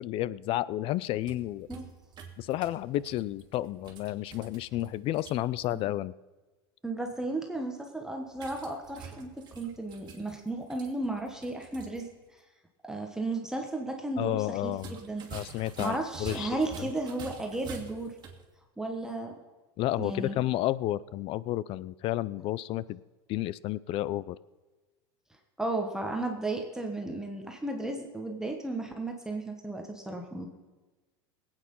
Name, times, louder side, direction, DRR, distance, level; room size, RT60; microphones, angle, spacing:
voice 1, 0.0-1.7 2.4-6.1 14.2-15.0 15.3-16.9 19.8-23.0 23.3-24.4, left 14 dB, 45° left, 20 dB, 0.5 m, -31 dB
sound 1, 1.0-5.7 8.3-12.1 12.4-12.5 14.7-18.4, right 6 dB, 35° right, 2.7 m, -47 dB
voice 2, 6.8-12.1 12.8-15.3 15.8-18.1 18.8-19.3 20.0-20.4 25.6-30.5, right 2 dB, 5° right, 2 dB, 1.4 m, -34 dB
19.5 x 8.9 x 5.5 m, 1.2 s
supercardioid pair, 120°, 13 cm